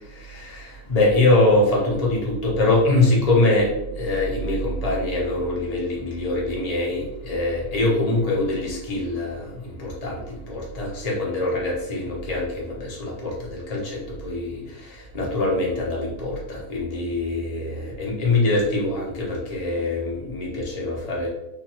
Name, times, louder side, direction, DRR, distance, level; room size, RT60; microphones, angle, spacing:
voice 1, 0.5-21.3, left 2 dB, 35° left, -4 dB, 0.7 m, -23 dB
3.5 x 2.5 x 2.8 m, 0.87 s
omnidirectional pair, 1.6 m